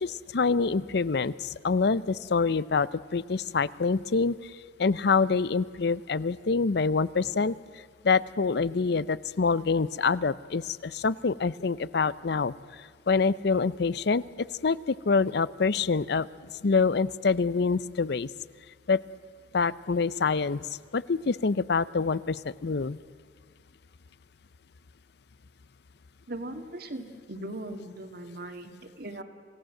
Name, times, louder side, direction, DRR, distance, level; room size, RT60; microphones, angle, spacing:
voice 1, 0.0-16.3 16.6-18.3 18.9-19.0 19.5-23.0, left 4 dB, 60° left, 19 dB, 0.6 m, -26 dB
voice 2, 26.3-29.2, right 1 dB, 55° right, 7 dB, 2.1 m, -39 dB
27.0 x 17.0 x 7.7 m, 2.2 s
head